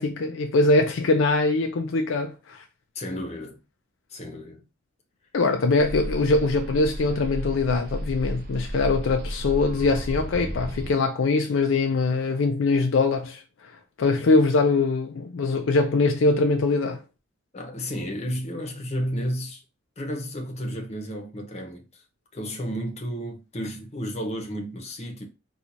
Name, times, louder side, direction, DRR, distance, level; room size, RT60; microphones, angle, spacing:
voice 1, 0.0-2.6 5.3-13.4 14.0-17.0, left 3 dB, 70° left, 0.4 m, -22 dB
voice 2, 2.9-3.6 4.1-4.6 17.5-19.6 20.0-22.0 22.3-25.2, equal, 35° left, 0.8 m, -32 dB
sound 1, 5.8-10.9, equal, 50° right, 0.6 m, -33 dB
4.3 x 2.4 x 2.6 m
head